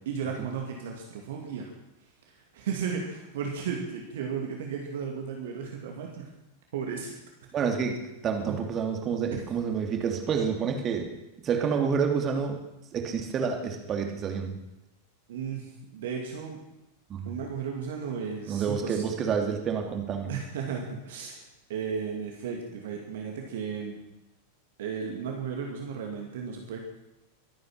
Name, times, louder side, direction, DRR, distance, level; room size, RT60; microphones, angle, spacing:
voice 1, 0.1-1.7 2.5-6.3 6.7-7.1 8.5-8.6 15.3-16.6 17.3-19.1 20.3-21.4 21.7-24.0 24.8-26.8, right 6 dB, 55° right, 1 dB, 2.5 m, -34 dB
voice 2, 7.5-11.1 11.4-12.6 12.9-14.6 17.1-17.2 18.5-20.3, right 6 dB, 30° right, 3 dB, 2.7 m, -28 dB
23.5 x 9.3 x 6.2 m, 0.94 s
figure-of-eight pair, 90°, 0 cm